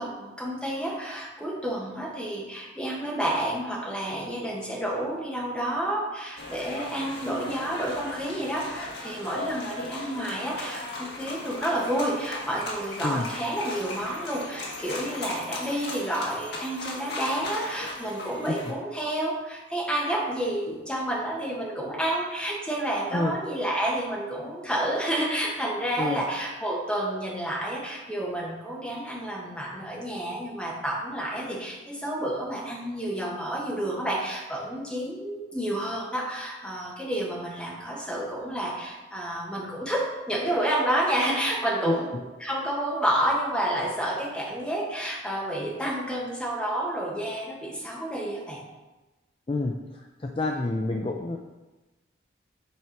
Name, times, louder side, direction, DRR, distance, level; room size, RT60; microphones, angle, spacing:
voice 1, 0.0-48.6, right 1 dB, 5° left, -4 dB, 1.4 m, -30 dB
sound 1, 6.4-18.7, left 2 dB, 65° left, 1.5 m, -37 dB
voice 2, 49.5-51.4, left 2 dB, 30° left, 2 dB, 0.4 m, -28 dB
8.3 x 4.6 x 4.5 m, 1.1 s
head